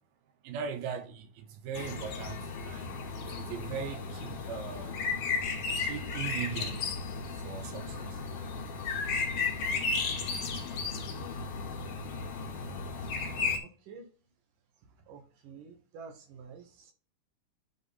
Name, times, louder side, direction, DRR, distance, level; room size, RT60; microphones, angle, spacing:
voice 1, 0.4-2.4 2.7-4.9 5.8-6.8 7.4-8.2, right 7 dB, 90° right, 3.0 m, -39 dB
sound 1, 1.7-13.6, left 4 dB, 65° left, 2.7 m, -34 dB
voice 2, 13.6-14.1 15.1-16.9, right 5 dB, 65° right, 2.7 m, -49 dB
10.5 x 3.8 x 4.1 m
omnidirectional pair, 4.3 m